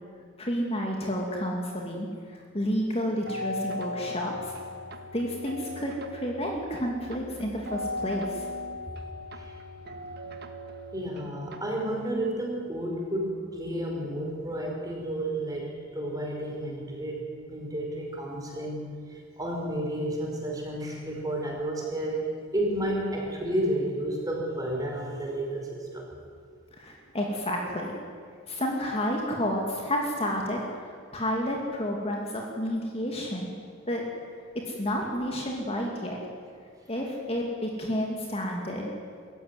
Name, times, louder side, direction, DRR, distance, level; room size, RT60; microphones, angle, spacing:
voice 1, 0.4-4.5 5.1-8.4 9.8-9.9 26.7-27.9 28.5-33.5 33.9-34.0 34.7-36.2 36.9-38.9, equal, 30° left, 0 dB, 2.4 m, -30 dB
sound 1, 3.3-12.1, left 1 dB, 50° right, 1.6 m, -38 dB
voice 2, 10.9-18.8 19.1-26.1 38.7-38.8, right 1 dB, 20° right, -1 dB, 5.0 m, -31 dB
24.0 x 14.0 x 9.6 m, 2.1 s
head